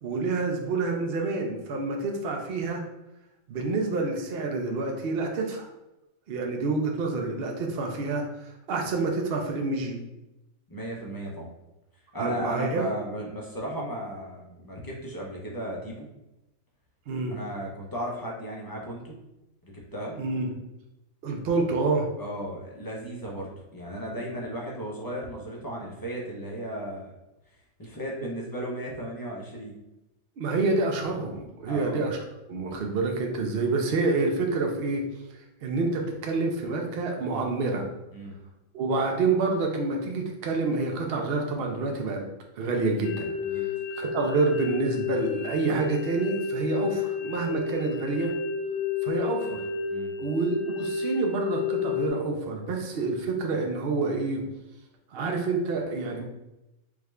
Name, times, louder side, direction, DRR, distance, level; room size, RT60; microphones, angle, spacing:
voice 1, 0.0-2.8 3.5-5.7 6.3-10.0 12.2-12.9 17.1-17.4 20.1-20.5 21.2-22.1 30.4-32.2 32.5-35.0 35.6-37.9 38.7-42.3 42.6-43.3 44.0-48.3 49.0-49.6 50.2-54.4 55.1-56.2, right 3 dB, 60° right, 2 dB, 0.7 m, -28 dB
voice 2, 10.7-11.5 12.1-16.1 17.3-19.1 19.6-20.2 22.2-27.1 27.8-29.7 31.7-32.0 38.1-38.3 43.4-43.7 49.9-50.1, equal, 25° left, -3 dB, 0.5 m, -35 dB
sound 1, 43.0-52.1, left 5 dB, 80° left, 1.1 m, -31 dB
4.8 x 2.4 x 3.2 m, 0.95 s
omnidirectional pair, 1.4 m